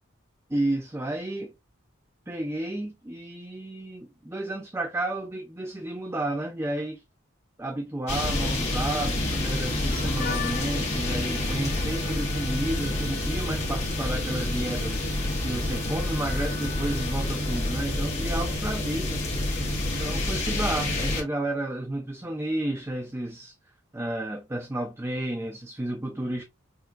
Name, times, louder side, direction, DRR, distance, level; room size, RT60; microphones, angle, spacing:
voice 1, 0.5-1.5 2.3-7.0 7.6-14.9 15.4-19.3 19.8-23.6 23.9-26.4, right 1 dB, 10° right, 0.5 m, -32 dB
sound 1, 8.1-21.2, left 1 dB, 35° left, 1.6 m, -28 dB
Harmonica, 9.9-19.5, left 7 dB, 50° left, 1.0 m, -43 dB
6.3 x 2.8 x 2.2 m
head